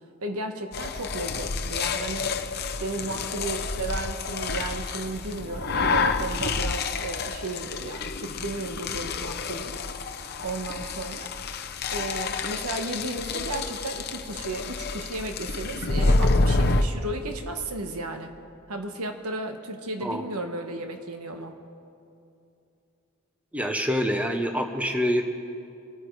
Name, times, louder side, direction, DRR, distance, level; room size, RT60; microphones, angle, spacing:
voice 1, 0.2-2.4 2.8-9.8 10.4-11.3 11.9-18.3 18.7-21.6, right 2 dB, 85° right, 5 dB, 1.3 m, -34 dB
sound 1, 0.7-16.8, left 3 dB, 45° left, 0.7 m, -28 dB
voice 2, 23.5-25.3, equal, 5° right, 5 dB, 0.7 m, -26 dB
26.0 x 9.3 x 4.7 m, 2.6 s
head